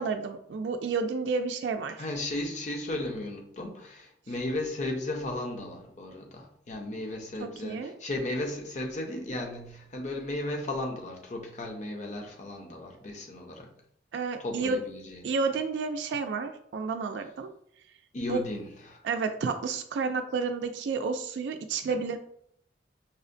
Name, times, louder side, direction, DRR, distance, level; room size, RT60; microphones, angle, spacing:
voice 1, 0.0-2.0 7.4-7.9 14.1-14.8 15.2-17.5 18.3-18.4 19.0-22.2, right 4 dB, 80° right, 6 dB, 0.3 m, -30 dB
voice 2, 2.0-13.7 14.4-15.2 18.1-19.0, left 1 dB, 45° left, 2 dB, 0.6 m, -35 dB
5.4 x 2.1 x 2.6 m, 0.68 s
head